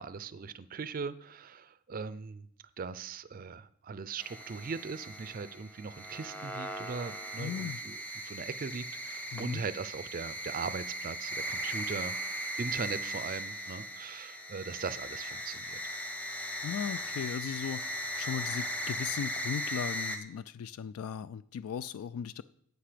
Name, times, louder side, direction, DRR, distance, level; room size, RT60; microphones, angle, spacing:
voice 1, 0.0-2.5 2.8-15.8, right 5 dB, 40° right, 15 dB, 0.4 m, -39 dB
sound 1, 4.2-20.2, equal, 5° left, 0.8 m, -38 dB
voice 2, 7.4-7.8 9.3-9.6 16.6-17.9 18.2-22.4, left 8 dB, 70° left, 16 dB, 0.3 m, -37 dB
11.5 x 8.2 x 5.0 m, 0.68 s
head